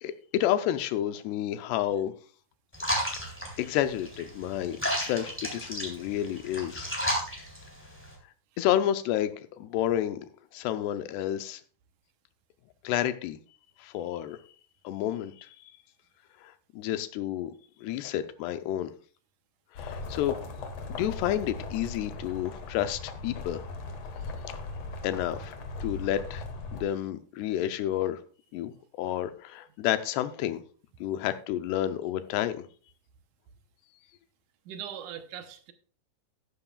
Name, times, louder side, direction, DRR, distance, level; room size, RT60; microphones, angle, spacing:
voice 1, 0.0-2.1 3.1-3.2 3.6-6.9 8.6-10.3 10.5-11.6 12.8-13.4 13.8-14.4 14.8-15.6 16.4-17.5 17.8-18.9 19.7-20.4 20.9-23.7 25.0-25.5 25.8-26.5 26.7-28.2 28.5-30.6 31.0-32.7, left 11 dB, 85° left, 2.8 m, -30 dB
sound 1, 2.7-8.1, equal, 5° left, 3.1 m, -33 dB
sound 2, 19.7-26.8, left 3 dB, 55° left, 1.9 m, -38 dB
voice 2, 34.7-35.7, right 9 dB, 70° right, 1.9 m, -40 dB
13.5 x 11.5 x 2.4 m
omnidirectional pair, 4.7 m